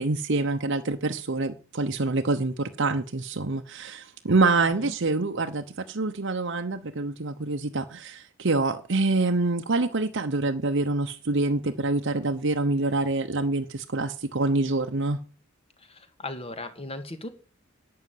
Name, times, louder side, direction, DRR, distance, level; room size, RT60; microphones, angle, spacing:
voice 1, 0.0-15.2, right 3 dB, 60° right, 0.9 m, -26 dB
voice 2, 4.6-4.9 15.8-17.3, left 2 dB, 30° left, 1.9 m, -38 dB
11.5 x 8.8 x 9.3 m
head